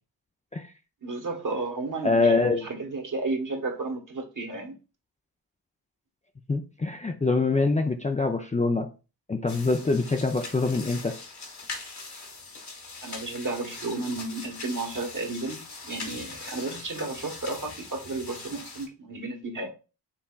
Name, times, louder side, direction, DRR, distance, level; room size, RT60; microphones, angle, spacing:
voice 1, 1.0-4.7 13.0-19.7, right 3 dB, 45° right, 1.4 m, -33 dB
voice 2, 2.0-2.6 6.5-8.9 9.3-11.2, left 3 dB, 15° left, 0.5 m, -24 dB
sound 1, 9.5-18.9, left 3 dB, 65° left, 1.7 m, -41 dB
5.7 x 3.4 x 2.3 m
cardioid pair, 50°, 42 cm